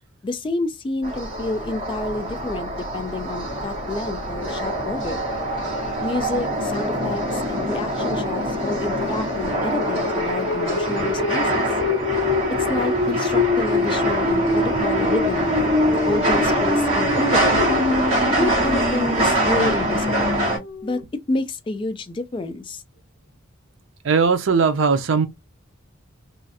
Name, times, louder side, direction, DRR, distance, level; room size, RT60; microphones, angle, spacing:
voice 1, 0.2-5.3 6.0-11.8 12.5-17.7 18.3-20.3 20.8-21.0 21.3-22.8, left 2 dB, 25° left, 0.3 m, -29 dB
sound 1, 1.0-20.6, equal, 30° right, 1.8 m, -22 dB
sound 2, 11.8-21.0, left 4 dB, 85° left, 0.7 m, -38 dB
voice 2, 24.0-25.3, right 5 dB, 70° right, 0.5 m, -18 dB
3.1 x 2.4 x 2.7 m
head